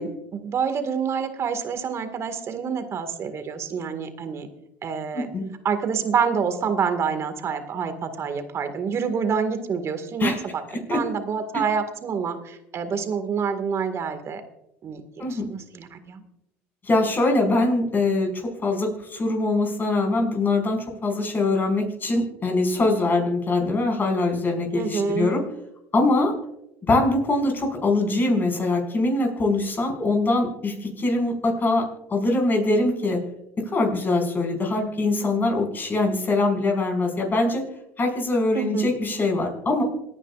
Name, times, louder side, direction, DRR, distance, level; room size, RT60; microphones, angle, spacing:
voice 1, 0.0-4.5 4.8-5.3 5.6-14.4 14.8-16.2 24.7-25.4 38.5-38.9, right 6 dB, 45° right, 9 dB, 1.9 m, -27 dB
voice 2, 5.1-5.4 10.2-10.4 10.7-11.0 15.2-15.5 16.8-25.4 25.9-26.3 26.9-31.8 32.1-33.2 33.7-37.6 38.0-39.8, left 2 dB, 30° left, 2 dB, 5.5 m, -23 dB
27.0 x 9.9 x 2.5 m, 0.84 s
hypercardioid pair, 80°, 7 cm